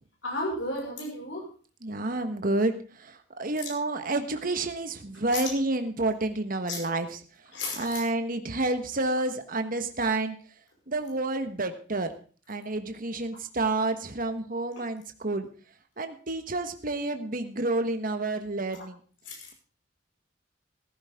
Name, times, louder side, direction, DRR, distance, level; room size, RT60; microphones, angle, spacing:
voice 1, 0.2-1.5 5.3-5.5 6.7-6.8 7.5-8.0 10.0-10.1 18.7-18.9 19.3-19.5, left 2 dB, 85° left, -1 dB, 5.7 m, -34 dB
voice 2, 1.8-2.7 3.0-7.2 7.8-10.4 10.9-12.1 12.5-15.5 16.0-19.0, right 2 dB, 50° right, 8 dB, 1.4 m, -29 dB
15.0 x 14.0 x 3.7 m, 0.39 s
head